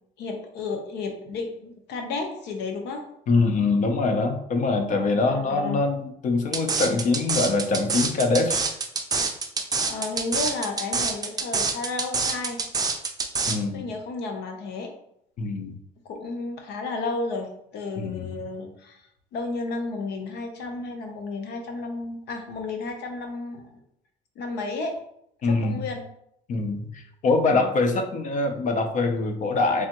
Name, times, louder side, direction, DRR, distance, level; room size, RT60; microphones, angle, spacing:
voice 1, 0.2-3.0 5.3-5.8 9.9-12.6 13.7-14.9 16.0-23.8 24.4-25.0 25.4-26.0 27.5-27.7, left 3 dB, 80° left, 4 dB, 0.8 m, -32 dB
voice 2, 3.3-8.7 13.5-13.9 15.4-15.8 18.0-18.3 25.4-25.8 26.5-29.9, left 3 dB, 50° left, 7 dB, 0.6 m, -24 dB
sound 1, 6.5-13.6, right 4 dB, 20° right, 0.5 m, -26 dB
3.4 x 3.4 x 2.9 m, 0.74 s
cardioid pair, 110°, 17 cm